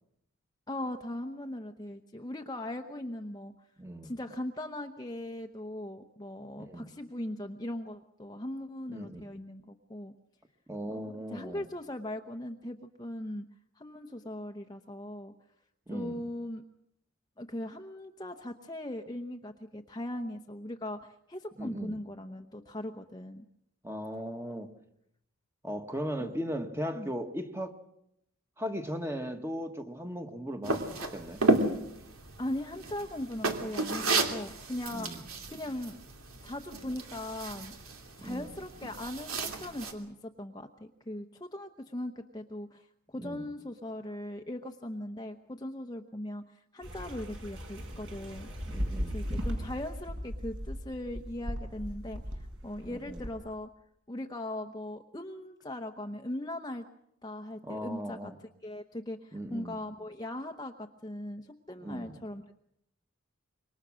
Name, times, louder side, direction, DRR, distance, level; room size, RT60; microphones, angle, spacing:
voice 1, 0.7-3.5 4.0-10.1 10.9-13.5 13.7-15.3 15.9-16.6 17.4-23.4 26.2-26.3 26.9-27.1 32.4-34.0 34.3-35.1 35.5-36.0 36.4-37.7 38.2-48.5 49.1-53.7 54.1-56.9 57.2-58.3 58.6-62.6, left 1 dB, 20° left, 5 dB, 0.9 m, -39 dB
voice 2, 3.8-4.1 6.6-6.9 8.9-9.2 10.7-11.6 15.9-16.2 21.6-22.0 23.8-24.7 25.6-27.8 28.6-31.4 34.9-35.2 38.2-38.5 43.2-43.5 48.7-49.2 52.9-53.2 57.6-58.3 59.3-59.8 61.8-62.2, equal, 10° right, 5 dB, 1.6 m, -37 dB
sound 1, 30.6-39.9, right 2 dB, 75° right, 2.9 m, -33 dB
sound 2, 46.8-53.3, equal, 60° right, 5.9 m, -37 dB
26.5 x 23.5 x 6.3 m, 0.77 s
head